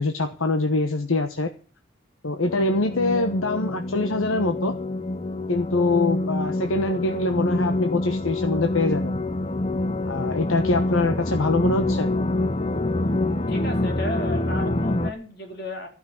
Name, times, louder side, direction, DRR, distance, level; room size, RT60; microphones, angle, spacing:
voice 1, 0.0-1.5 2.2-4.7 5.5-9.2 10.1-12.1, left 2 dB, 85° left, 6 dB, 1.2 m, -24 dB
sound 1, 2.4-15.1, left 2 dB, 30° left, 0.7 m, -26 dB
voice 2, 13.3-15.9, left 1 dB, 55° left, 3 dB, 3.9 m, -34 dB
14.5 x 6.2 x 9.5 m, 0.39 s
head